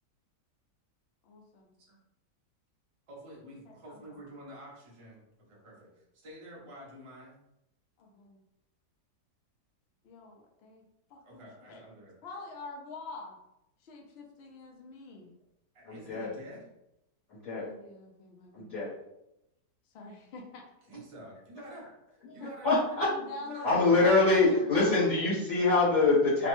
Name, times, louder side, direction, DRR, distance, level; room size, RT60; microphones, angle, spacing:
voice 1, 1.2-1.7 3.7-4.2 8.0-8.4 10.0-10.8 11.1-11.9 12.2-13.4 13.8-15.3 17.5-18.7 19.9-20.6 23.0-25.2, left 3 dB, 75° left, 1 dB, 0.5 m, -45 dB
voice 2, 3.1-7.4 11.2-12.1 15.7-16.6 20.9-21.9 22.3-22.9 23.5-23.7 24.1-24.5, right 1 dB, 45° right, -4 dB, 0.4 m, -48 dB
voice 3, 15.8-16.3 17.3-17.6 18.5-18.9 22.2-22.3 22.6-23.1 23.6-26.5, left 3 dB, 60° left, -11 dB, 1.3 m, -24 dB
3.0 x 2.1 x 2.9 m, 0.86 s
omnidirectional pair, 1.7 m